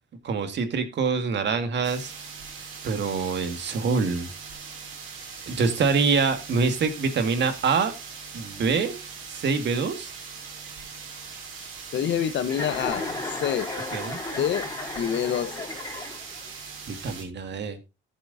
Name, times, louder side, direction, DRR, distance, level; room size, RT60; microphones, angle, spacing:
voice 1, 0.2-2.1 2.8-4.3 5.5-7.9 8.3-8.9 9.3-10.1 13.9-14.2 16.2-16.4 16.9-17.8, right 5 dB, 60° right, 1.9 m, -25 dB
sound 1, 1.8-17.2, right 5 dB, 90° right, 3.4 m, -41 dB
voice 2, 11.9-13.1 13.4-13.7 14.4-15.7, left 9 dB, 65° left, 1.1 m, -27 dB
Chuckle chortle, 12.4-16.5, left 2 dB, 20° left, 4.1 m, -34 dB
14.5 x 7.5 x 2.7 m
cardioid pair, 90°, 20 cm